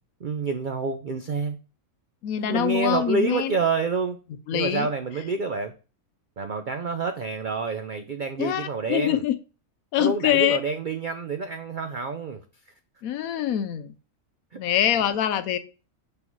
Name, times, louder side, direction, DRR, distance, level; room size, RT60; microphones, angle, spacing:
voice 1, 0.2-1.6 2.4-4.2 4.5-5.7 6.4-9.2 10.0-12.7 14.5-14.6, right 4 dB, 70° right, 8 dB, 0.4 m, -28 dB
voice 2, 2.2-3.5 4.5-4.9 8.4-9.3 9.9-10.6 13.0-13.9 14.6-15.6, left 11 dB, 75° left, 13 dB, 1.0 m, -24 dB
5.5 x 4.2 x 4.5 m, 0.33 s
omnidirectional pair, 1.6 m